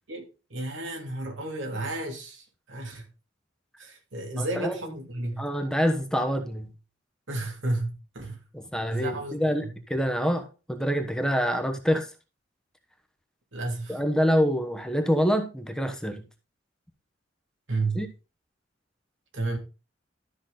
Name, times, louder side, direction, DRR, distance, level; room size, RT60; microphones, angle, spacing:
voice 1, 0.1-3.0 3.8-5.5 7.3-8.4 8.9-9.7 13.5-14.0 17.7-18.1 19.3-19.6, right 2 dB, 80° right, 3.0 m, -32 dB
voice 2, 4.4-4.7 5.4-6.7 8.7-12.1 13.9-16.2 18.0-18.1, equal, 5° left, 1.1 m, -26 dB
13.0 x 6.0 x 3.9 m
head